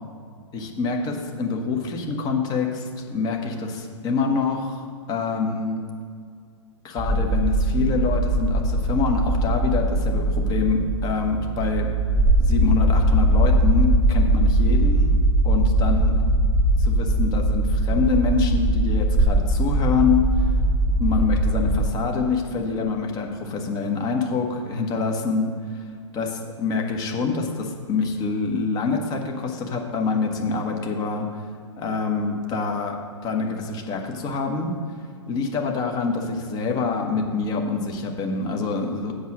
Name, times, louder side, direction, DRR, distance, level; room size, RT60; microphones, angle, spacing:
voice 1, 0.5-5.8 6.8-11.9 12.4-16.2 16.8-20.2 21.0-25.8 26.1-31.3 31.8-33.0 33.2-34.7 35.3-39.1, left 4 dB, 25° left, 2 dB, 1.3 m, -26 dB
sound 1, 7.0-21.9, right 1 dB, 10° right, 1.3 m, -20 dB
8.1 x 6.5 x 6.0 m, 2.2 s
figure-of-eight pair, 115°, 16 cm